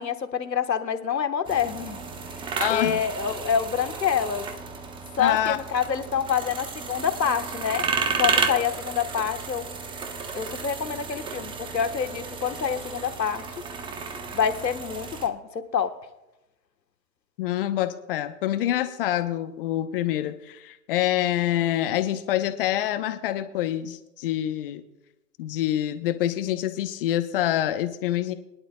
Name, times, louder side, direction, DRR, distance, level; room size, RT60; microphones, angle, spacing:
voice 1, 0.0-2.0 2.7-4.5 5.2-7.9 8.2-9.7 10.3-13.4 14.3-15.9, left 7 dB, 85° left, 9 dB, 1.4 m, -27 dB
sound 1, 1.4-15.3, right 5 dB, 10° right, 0.8 m, -32 dB
voice 2, 2.6-3.0 5.2-5.6 17.4-24.8 25.4-28.3, left 12 dB, 35° left, 10 dB, 0.8 m, -26 dB
23.0 x 11.0 x 2.3 m, 0.95 s
hypercardioid pair, 120°, 49 cm